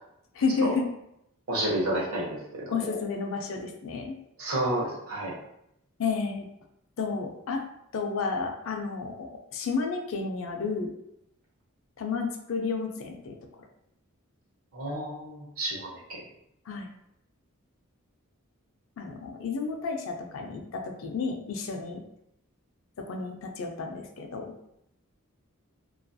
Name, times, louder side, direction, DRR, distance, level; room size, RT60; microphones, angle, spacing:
voice 1, 0.3-0.9 2.7-4.1 6.0-6.4 7.0-7.6 7.9-10.9 12.0-13.4 16.7-16.9 19.0-22.0 23.0-24.5, left 4 dB, 65° left, 3 dB, 0.4 m, -31 dB
voice 2, 1.5-2.8 4.4-5.3 14.7-16.2, right 1 dB, 80° right, -3 dB, 0.7 m, -30 dB
2.5 x 2.3 x 2.3 m, 0.79 s
head